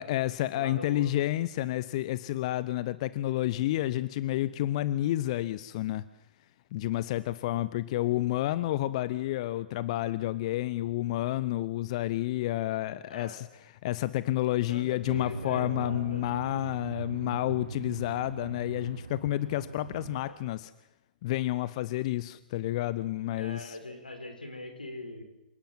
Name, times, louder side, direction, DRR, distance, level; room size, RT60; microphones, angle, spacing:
voice 1, 0.0-6.0 6.7-20.7 21.2-23.8, left 15 dB, 45° left, 16 dB, 0.8 m, -30 dB
voice 2, 0.5-1.1 13.1-13.4 14.7-16.3 20.3-20.4 23.4-25.2, left 2 dB, 85° left, 6 dB, 4.7 m, -41 dB
sound 1, 15.0-20.2, right 4 dB, 80° right, 1.2 m, -40 dB
27.5 x 18.5 x 7.7 m, 1.0 s
figure-of-eight pair, 115°, 5 cm